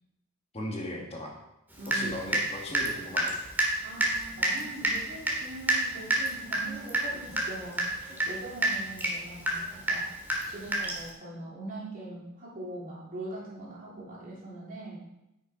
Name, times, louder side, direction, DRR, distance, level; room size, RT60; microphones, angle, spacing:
voice 1, 0.5-1.4 1.9-3.4, left 1 dB, 30° left, 0 dB, 1.5 m, -37 dB
voice 2, 1.8-2.4 3.8-10.1 10.5-15.0, right 2 dB, 40° right, -5 dB, 3.2 m, -42 dB
Water tap faucet / Drip, 1.9-2.5 2.7-11.1, right 1 dB, 10° right, 1.9 m, -28 dB
9.6 x 6.4 x 4.9 m, 0.89 s
head